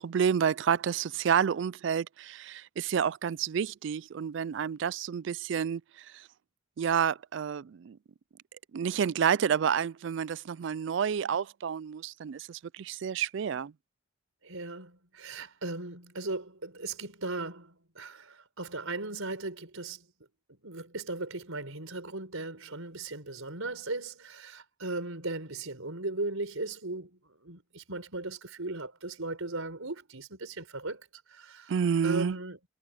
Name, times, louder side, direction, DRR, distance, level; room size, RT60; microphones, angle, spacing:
voice 1, 0.0-6.2 6.8-8.0 8.7-13.7 31.7-32.4, right 7 dB, 60° right, 0.3 m, -29 dB
voice 2, 14.4-20.1 20.6-31.8 32.0-32.6, right 2 dB, 80° right, 4.7 m, -37 dB
head